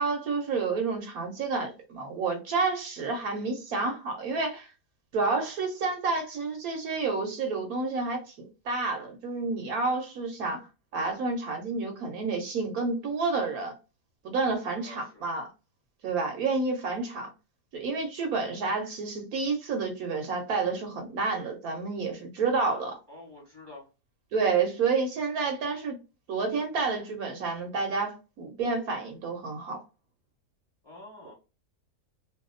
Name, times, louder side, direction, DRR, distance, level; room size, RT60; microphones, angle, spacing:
voice 1, 0.0-4.7 5.1-8.3 8.6-10.7 10.9-13.7 14.2-15.5 16.0-17.3 17.7-23.0 24.3-26.0 26.3-29.8, right 4 dB, 70° right, 1.1 m, -29 dB
voice 2, 14.7-15.2 23.1-23.8 30.8-31.3, left 2 dB, 15° left, 1.3 m, -48 dB
2.7 x 2.3 x 3.7 m
omnidirectional pair, 1.7 m